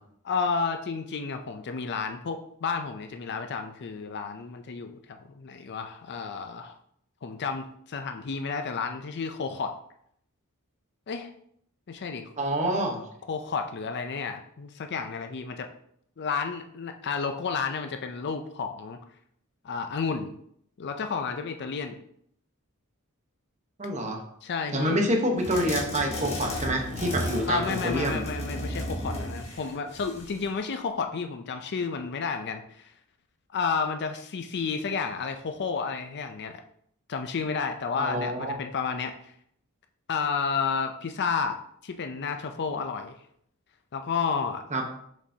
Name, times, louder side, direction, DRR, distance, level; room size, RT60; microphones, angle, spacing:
voice 1, 0.2-6.8 7.2-9.8 11.1-11.3 11.9-12.3 13.3-15.7 16.2-19.0 19.6-20.3 20.8-22.0 24.4-25.0 27.4-32.9 33.5-36.5 37.1-39.3 40.1-43.1 43.9-44.6, left 5 dB, 50° left, 6 dB, 0.5 m, -31 dB
voice 2, 12.4-13.0 23.8-24.2 24.7-28.3 38.0-38.6 44.7-44.8, right 1 dB, 35° right, 2 dB, 1.0 m, -27 dB
sound 1, 25.4-30.5, left 1 dB, 30° left, 1.4 m, -34 dB
6.7 x 5.2 x 2.8 m, 0.68 s
head